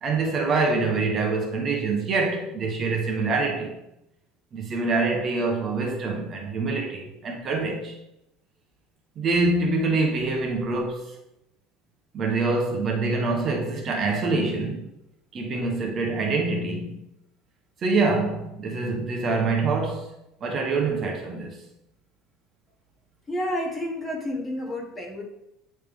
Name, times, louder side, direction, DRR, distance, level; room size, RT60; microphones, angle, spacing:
voice 1, 0.0-3.7 4.5-7.9 9.2-11.1 12.1-14.9 15.3-16.9 17.8-20.1 20.4-21.6, right 3 dB, 30° right, 0.9 m, -25 dB
voice 2, 23.3-25.2, left 1 dB, 15° left, 1.1 m, -30 dB
8.8 x 3.3 x 3.4 m
cardioid pair, 155°, 0 cm